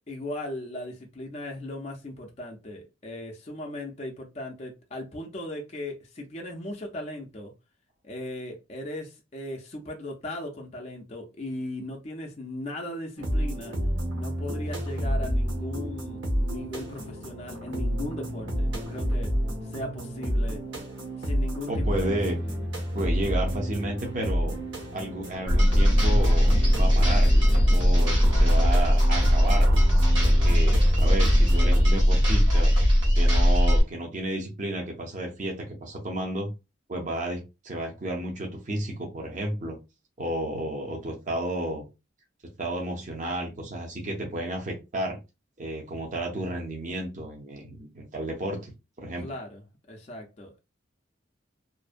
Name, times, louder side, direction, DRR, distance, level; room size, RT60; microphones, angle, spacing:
voice 1, 0.0-7.5 8.0-13.7 14.1-19.3 19.6-20.6 21.2-22.7 49.2-49.6 49.9-50.6, left 1 dB, 30° left, 0.4 m, -38 dB
sound 1, 13.2-31.8, equal, 65° right, 0.9 m, -29 dB
voice 2, 21.7-22.4 22.9-24.5 24.9-29.7 30.2-32.7 33.1-36.5 36.9-39.8 40.2-41.9 42.6-45.2 45.6-48.7 49.0-49.3, right 1 dB, 40° right, 0.5 m, -32 dB
sound 2, 25.5-33.8, equal, 85° right, 1.2 m, -19 dB
2.5 x 2.1 x 2.4 m
head